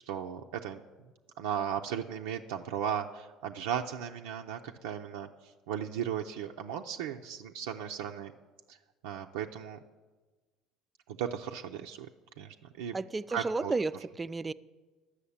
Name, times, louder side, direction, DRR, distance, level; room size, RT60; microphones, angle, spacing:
voice 1, 0.1-0.8 1.4-5.3 5.7-8.3 8.7-8.8 9.0-9.8 11.1-12.1 12.4-13.0 13.3-13.7, right 9 dB, 85° right, 2 dB, 0.5 m, -36 dB
voice 2, 12.9-14.5, right 3 dB, 25° right, 15 dB, 0.4 m, -32 dB
11.5 x 6.3 x 8.4 m, 1.3 s
supercardioid pair, 85°, 0 cm